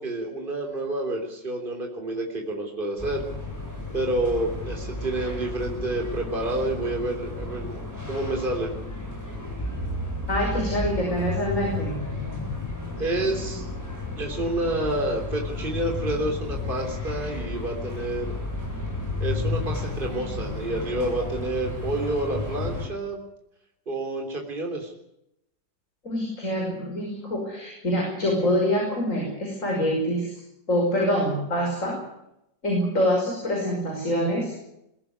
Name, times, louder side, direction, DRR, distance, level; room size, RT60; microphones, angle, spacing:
voice 1, 0.0-3.2 3.9-7.8 8.1-8.7 13.0-13.6 14.2-18.3 19.2-23.2 23.9-24.9, right 1 dB, 30° right, 2 dB, 3.6 m, -29 dB
sound 1, 3.0-22.9, left 2 dB, 10° left, 7.8 m, -32 dB
voice 2, 10.3-11.9 26.0-30.4 30.7-32.0 32.6-34.5, equal, 45° left, -1 dB, 6.1 m, -25 dB
22.5 x 14.5 x 9.6 m, 0.82 s
omnidirectional pair, 1.9 m